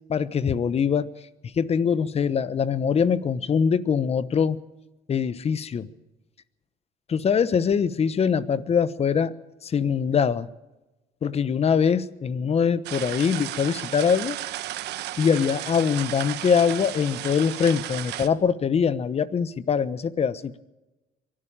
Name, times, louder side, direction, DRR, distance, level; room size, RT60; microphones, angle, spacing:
voice 1, 0.1-1.1 1.6-4.6 5.1-5.9 7.1-9.3 9.6-10.5 11.2-14.4 15.2-20.5, left 6 dB, 35° left, 16 dB, 1.1 m, -23 dB
sound 1, 12.8-18.3, right 14 dB, 80° right, 1.3 m, -34 dB
24.0 x 12.5 x 8.8 m, 1.0 s
cardioid pair, 110°, 17 cm